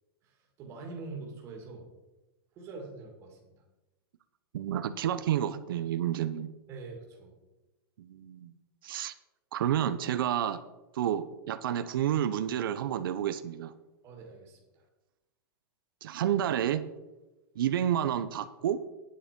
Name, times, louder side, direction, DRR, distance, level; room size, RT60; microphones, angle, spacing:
voice 1, 0.2-1.9 2.6-3.5 6.7-7.3 14.0-14.8, right 3 dB, 20° right, 0 dB, 2.5 m, -44 dB
voice 2, 4.5-6.5 8.0-8.5 8.8-9.1 9.5-10.6 10.9-13.7 16.0-16.8 17.6-18.8, right 10 dB, 60° right, 11 dB, 0.8 m, -30 dB
9.6 x 8.9 x 5.2 m, 1.0 s
supercardioid pair, 175°, 13 cm